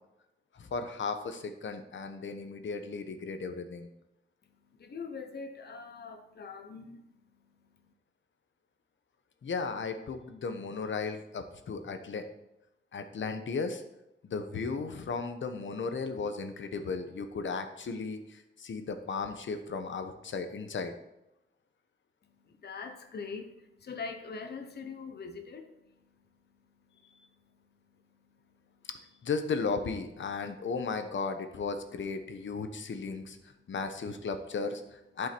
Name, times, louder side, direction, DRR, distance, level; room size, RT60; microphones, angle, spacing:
voice 1, 0.5-3.9 9.4-12.2 12.9-13.8 14.2-20.9 29.2-33.4 33.7-35.3, left 4 dB, 80° left, 8 dB, 1.0 m, -35 dB
voice 2, 4.8-7.0 22.4-25.7 26.1-26.3 28.2-28.3, left 4 dB, 55° left, 5 dB, 0.9 m, -42 dB
11.5 x 5.5 x 4.5 m, 0.87 s
wide cardioid pair, 170°, 20 cm